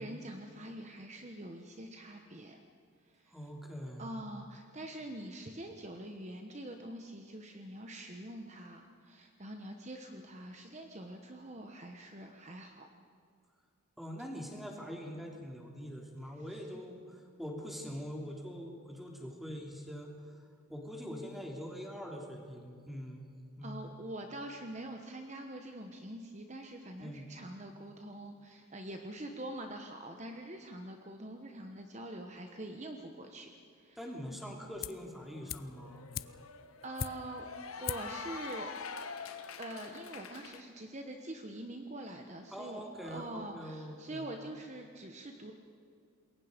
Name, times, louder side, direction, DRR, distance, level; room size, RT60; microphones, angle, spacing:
voice 1, 0.0-2.6 3.0-3.4 4.0-12.9 14.2-14.3 16.5-16.6 23.6-33.5 33.8-34.0 36.8-37.5 37.8-38.7 39.6-45.5, right 1 dB, 30° right, 4 dB, 1.1 m, -45 dB
voice 2, 3.3-4.3 14.0-20.1 20.7-23.3 23.6-23.9 27.0-27.3 34.0-36.1 42.5-44.3, equal, ahead, 0 dB, 3.0 m, -43 dB
sound 1, 34.8-35.1 35.5-37.5 37.8-38.2 38.5-38.6, left 8 dB, 40° left, 0.5 m, -41 dB
Cheering / Applause, 35.2-40.6, left 5 dB, 80° left, 1.4 m, -45 dB
27.5 x 22.0 x 5.2 m, 2.4 s
head